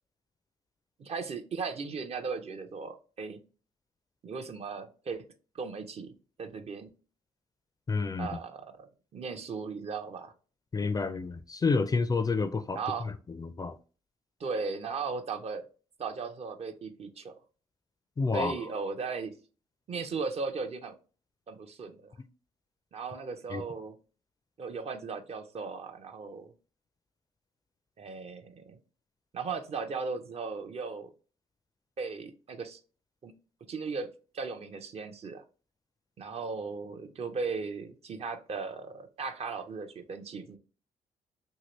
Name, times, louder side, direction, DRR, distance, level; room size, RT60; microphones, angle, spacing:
voice 1, 1.0-3.4 4.2-5.2 5.5-6.1 6.4-6.9 8.2-8.9 9.1-10.3 12.7-13.1 14.4-15.6 16.0-17.3 18.3-19.3 19.9-21.0 21.5-22.1 22.9-24.0 24.6-26.5 28.0-28.8 29.3-31.1 32.0-32.8 33.2-33.3 33.7-35.4 36.2-40.6, right 4 dB, 45° right, 0.5 m, -37 dB
voice 2, 7.9-8.4 10.7-12.8 13.3-13.8 18.2-18.5 23.5-23.6, left 4 dB, 25° left, 0.4 m, -29 dB
2.8 x 2.7 x 3.0 m
supercardioid pair, 55°, 14 cm